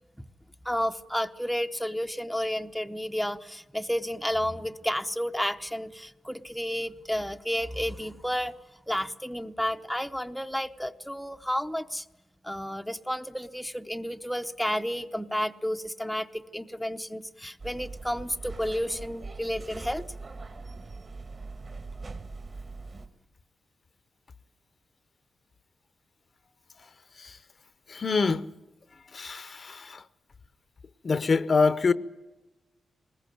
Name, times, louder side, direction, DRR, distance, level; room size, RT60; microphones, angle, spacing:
voice 1, 0.6-8.5 8.9-12.0 12.4-20.0, equal, ahead, 0.8 m, -31 dB
sound 1, 17.6-23.1, right 3 dB, 35° right, 1.8 m, -41 dB
voice 2, 27.9-28.5 29.1-30.0 31.0-31.9, left 4 dB, 40° left, 0.8 m, -25 dB
21.5 x 20.5 x 9.2 m
wide cardioid pair, 135°, 0 cm